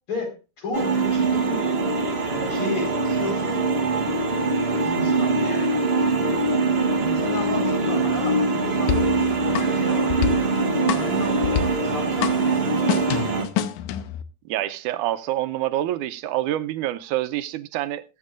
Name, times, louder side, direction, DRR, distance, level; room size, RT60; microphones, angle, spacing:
voice 1, 0.1-1.8 2.1-3.7 4.8-5.8 7.0-10.2 10.9-12.7, left 2 dB, 45° left, 5.2 m, -33 dB
sound 1, 0.7-13.5, right 3 dB, 65° right, 0.6 m, -23 dB
sound 2, 8.9-14.2, left 9 dB, 85° left, 2.3 m, -29 dB
voice 2, 14.5-18.0, right 14 dB, 80° right, 2.1 m, -26 dB
20.5 x 9.1 x 2.5 m
omnidirectional pair, 3.5 m